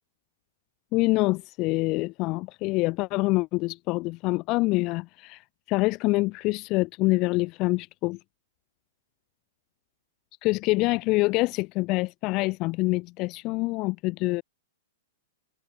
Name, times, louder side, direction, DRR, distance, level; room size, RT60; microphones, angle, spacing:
voice 1, 0.9-8.2 10.4-14.4, left 23 dB, 35° left, 1.1 m, -26 dB
hypercardioid pair, 150°, 0 cm